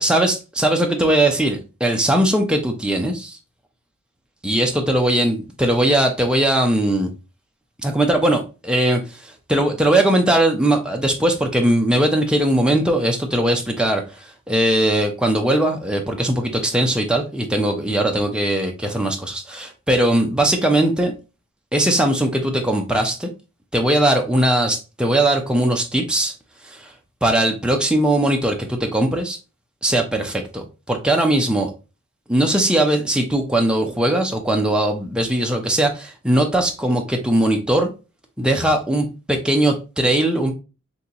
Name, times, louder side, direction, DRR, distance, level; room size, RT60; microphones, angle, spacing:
voice 1, 0.0-3.4 4.4-7.1 7.8-21.1 21.7-23.3 23.7-26.3 26.6-26.9 27.2-29.4 29.8-31.7 32.3-37.9 38.4-40.5, right 1 dB, 5° right, 0.5 m, -20 dB
3.8 x 2.9 x 2.8 m
head